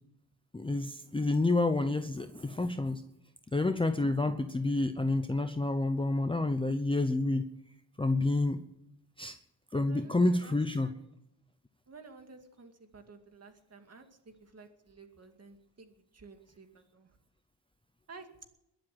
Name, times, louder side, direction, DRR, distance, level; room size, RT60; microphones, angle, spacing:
voice 1, 0.5-3.0 3.5-7.4 8.0-8.6 9.2-9.4 9.7-11.0, left 2 dB, 10° left, 8 dB, 0.7 m, -29 dB
voice 2, 4.0-4.5 9.7-10.6 10.8-11.0 11.9-17.1 18.1-18.3, right 4 dB, 35° right, 5 dB, 2.4 m, -53 dB
21.5 x 7.8 x 7.9 m, 0.82 s
wide cardioid pair, 140°, 44 cm